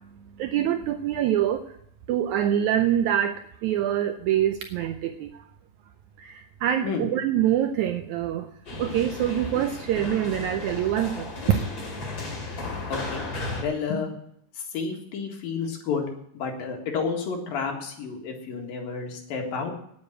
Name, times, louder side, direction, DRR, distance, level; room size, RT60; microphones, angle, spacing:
voice 1, 0.4-1.6 2.1-5.4 6.2-8.5 8.8-11.6, right 11 dB, 80° right, 7 dB, 1.7 m, -25 dB
sound 1, 8.7-13.6, left 3 dB, 30° left, 2.3 m, -34 dB
voice 2, 12.9-13.2 13.6-14.1 14.7-16.1 16.4-19.7, left 5 dB, 80° left, 2 dB, 3.6 m, -30 dB
9.7 x 8.5 x 7.9 m, 0.71 s
omnidirectional pair, 4.1 m